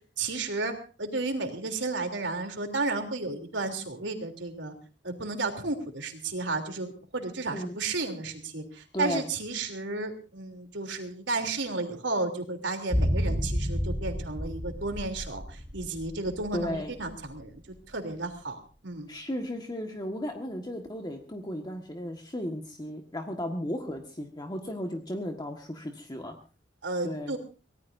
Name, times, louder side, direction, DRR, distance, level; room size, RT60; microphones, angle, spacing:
voice 1, 0.2-0.7 1.0-4.7 5.0-17.5 17.9-19.1 26.8-27.4, right 3 dB, 90° right, 6 dB, 3.3 m, -33 dB
voice 2, 8.9-9.3 16.5-16.9 19.1-26.4 27.0-27.4, equal, 25° left, 3 dB, 1.6 m, -35 dB
sound 1, 12.9-17.1 17.4-17.5, equal, ahead, 5.2 m, -30 dB
24.0 x 18.0 x 2.7 m, 0.35 s
head